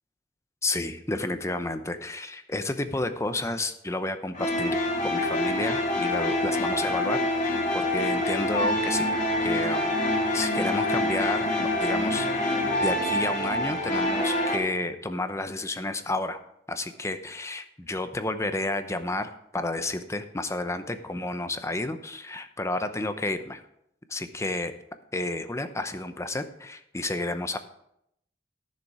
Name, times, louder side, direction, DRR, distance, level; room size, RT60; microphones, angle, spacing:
voice 1, 0.6-4.8 5.0-9.1 9.4-10.0 10.3-16.4 16.7-23.6 24.1-24.7 25.1-27.6, left 2 dB, 15° left, 9 dB, 0.8 m, -31 dB
sound 1, 4.3-14.6, left 1 dB, 45° left, 2.5 m, -26 dB
15.0 x 6.8 x 4.9 m, 0.76 s
head